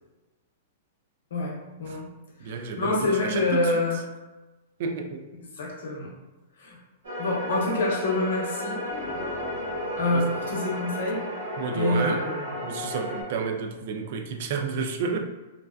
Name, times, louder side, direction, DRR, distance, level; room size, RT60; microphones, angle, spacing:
voice 1, 1.3-2.1 2.4-4.0 5.6-6.1 6.6-6.8 7.2-8.7 9.9-11.2 11.7-12.5, left 2 dB, 85° left, -2 dB, 0.7 m, -27 dB
voice 2, 2.4-3.7 4.8-5.2 10.1-10.2 11.6-12.2 12.6-15.2, right 5 dB, 55° right, 4 dB, 0.3 m, -30 dB
sound 1, 7.0-13.2, equal, 85° right, 0.9 m, -33 dB
sound 2, 8.9-11.8, left 1 dB, 15° left, 0.8 m, -42 dB
2.5 x 2.2 x 2.3 m, 1.1 s
hypercardioid pair, 150°, 0 cm